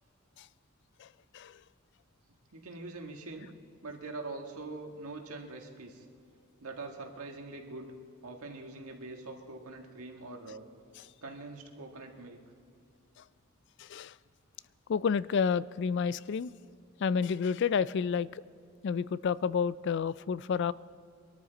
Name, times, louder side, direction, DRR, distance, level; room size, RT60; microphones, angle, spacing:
voice 1, 2.5-3.5 3.8-6.1 6.6-7.9 8.2-10.7 11.2-12.4, right 3 dB, 85° right, 1.7 m, -43 dB
voice 2, 13.8-14.1 14.9-16.5 17.0-18.4 18.8-20.7, left 6 dB, 55° left, 0.3 m, -30 dB
23.5 x 13.0 x 4.0 m
head